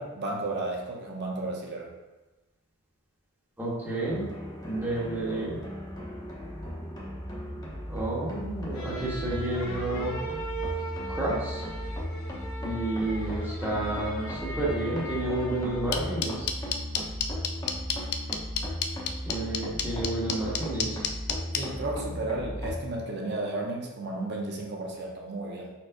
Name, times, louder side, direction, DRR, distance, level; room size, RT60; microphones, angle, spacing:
voice 1, 0.0-1.9 10.7-10.8 21.6-25.7, right 2 dB, 50° right, -1 dB, 0.8 m, -33 dB
voice 2, 3.6-4.3 4.6-5.6 7.9-10.2 11.1-11.6 12.6-16.5 19.2-21.0, right 2 dB, 10° right, -7 dB, 1.0 m, -31 dB
sound 1, 4.0-22.8, equal, 20° left, 0.9 m, -36 dB
sound 2, 8.7-16.2, right 2 dB, 70° left, 0.9 m, -39 dB
sound 3, 15.9-21.6, left 8 dB, 50° left, 0.4 m, -28 dB
4.7 x 4.4 x 2.6 m, 1.1 s
head